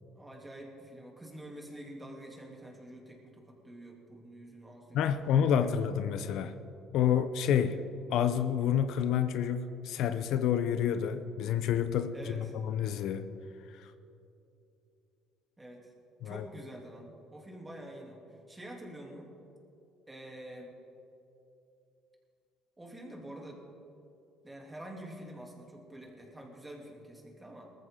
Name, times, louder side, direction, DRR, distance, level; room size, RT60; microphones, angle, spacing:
voice 1, 0.1-5.7 12.1-12.5 15.6-15.9 16.2-18.2 18.5-19.3 20.1-20.7 22.8-23.6 24.4-27.7, right 1 dB, 10° right, -1 dB, 2.9 m, -47 dB
voice 2, 4.9-6.5 6.9-7.8 8.1-13.3 13.8-13.9 16.2-16.4, left 9 dB, 70° left, 10 dB, 0.7 m, -29 dB
19.5 x 14.0 x 3.8 m, 2.7 s
cardioid pair, 110°, 0 cm